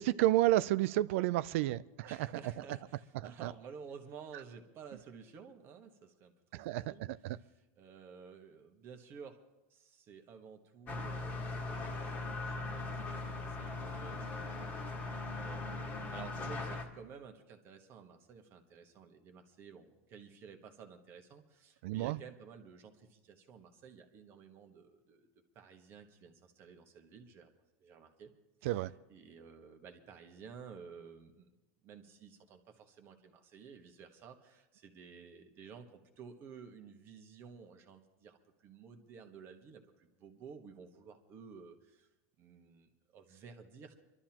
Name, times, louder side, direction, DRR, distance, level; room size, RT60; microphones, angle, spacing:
voice 1, 0.0-2.3 3.4-3.5 6.5-7.4 21.8-22.2 28.6-28.9, right 15 dB, 60° right, 17 dB, 0.4 m, -31 dB
voice 2, 2.0-7.0 7.3-9.4 9.7-25.3 25.5-27.5 27.8-28.3 28.6-31.5 31.8-42.1 42.4-43.9, right 6 dB, 30° right, 5 dB, 1.4 m, -53 dB
sound 1, 10.9-16.9, left 3 dB, 25° left, 1.7 m, -40 dB
26.0 x 12.5 x 2.9 m, 1.1 s
supercardioid pair, 165°, 8 cm